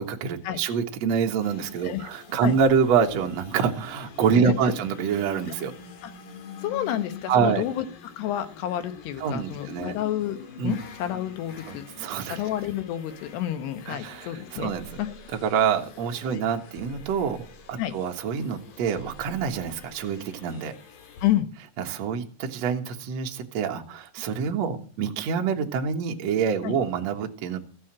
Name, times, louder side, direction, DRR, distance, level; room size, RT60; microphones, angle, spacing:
voice 1, 0.0-5.7 7.3-7.6 9.2-9.9 10.6-10.8 11.7-12.4 13.9-15.0 15.3-20.7 21.8-27.6, right 6 dB, 55° right, 4 dB, 2.0 m, -26 dB
sound 1, 1.4-21.3, left 5 dB, 60° left, 3.3 m, -45 dB
voice 2, 6.6-7.9 8.2-10.4 10.6-11.8 12.3-14.7 15.0-15.1 16.3-16.4 17.8-17.9 21.2-21.5 26.6-26.8, left 12 dB, 80° left, 10 dB, 3.4 m, -29 dB
15.0 x 7.8 x 8.7 m, 0.42 s
omnidirectional pair, 4.7 m